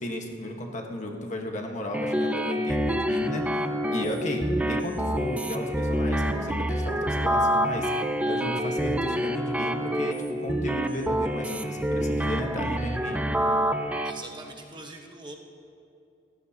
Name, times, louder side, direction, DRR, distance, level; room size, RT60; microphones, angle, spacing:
voice 1, 0.0-3.5 3.9-7.9 8.3-13.3, left 1 dB, 40° left, 2 dB, 1.4 m, -34 dB
sound 1, 1.9-14.1, equal, 5° right, 0.5 m, -27 dB
voice 2, 14.0-15.4, right 2 dB, 25° right, 1 dB, 1.2 m, -42 dB
27.5 x 14.5 x 2.9 m, 2.5 s
head